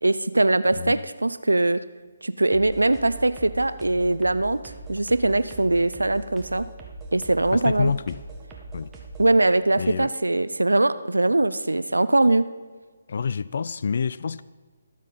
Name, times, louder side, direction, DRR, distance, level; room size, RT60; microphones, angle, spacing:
voice 1, 0.0-1.8 2.2-4.6 4.9-6.7 7.1-7.9 9.2-12.4, right 2 dB, 85° right, 0.5 m, -21 dB
sound 1, 2.5-9.3, right 2 dB, 15° right, 1.5 m, -41 dB
voice 2, 7.5-8.2 8.7-8.9 9.8-10.1 13.1-14.4, left 6 dB, 55° left, 0.3 m, -27 dB
21.0 x 7.4 x 4.2 m
figure-of-eight pair, 145°, 0 cm